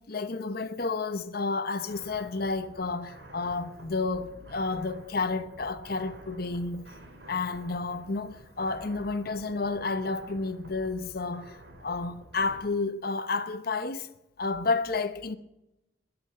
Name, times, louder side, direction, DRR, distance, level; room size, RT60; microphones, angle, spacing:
voice 1, 0.0-6.9 7.3-14.1 14.4-15.4, left 3 dB, 55° left, 1.0 m, -31 dB
sound 1, 1.9-12.6, right 1 dB, 65° right, 4.1 m, -50 dB
22.5 x 7.9 x 7.6 m
head